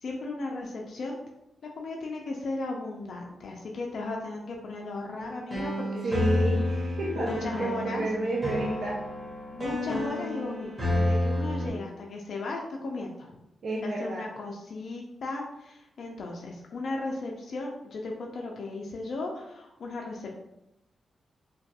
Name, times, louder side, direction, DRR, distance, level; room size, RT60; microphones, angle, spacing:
voice 1, 0.0-1.2 1.8-6.3 7.2-8.1 9.5-13.3 13.8-20.3, left 2 dB, 60° left, 0 dB, 0.3 m, -36 dB
sound 1, 5.2-11.7, left 1 dB, 20° right, 0.7 m, -30 dB
voice 2, 6.0-9.0 13.6-14.3, right 2 dB, 65° right, -5 dB, 0.4 m, -30 dB
2.2 x 2.2 x 2.7 m, 0.87 s
wide cardioid pair, 140°, 0 cm